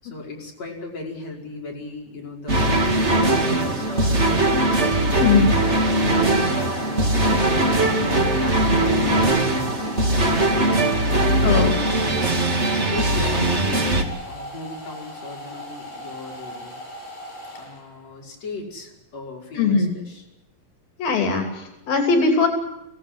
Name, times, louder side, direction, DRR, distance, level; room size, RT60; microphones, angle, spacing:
voice 1, 0.0-11.9 12.7-16.7 17.5-20.2, left 2 dB, 50° left, -1 dB, 6.6 m, -37 dB
sound 1, 2.5-14.0, right 1 dB, 20° right, 2.4 m, -20 dB
Domestic sounds home sounds, 4.9-18.2, equal, 70° left, 8.3 m, -38 dB
voice 2, 5.2-5.5 11.4-11.7 19.6-19.9 21.0-22.5, left 4 dB, 90° left, 4 dB, 4.8 m, -20 dB
25.5 x 16.5 x 7.9 m, 0.98 s
omnidirectional pair, 4.0 m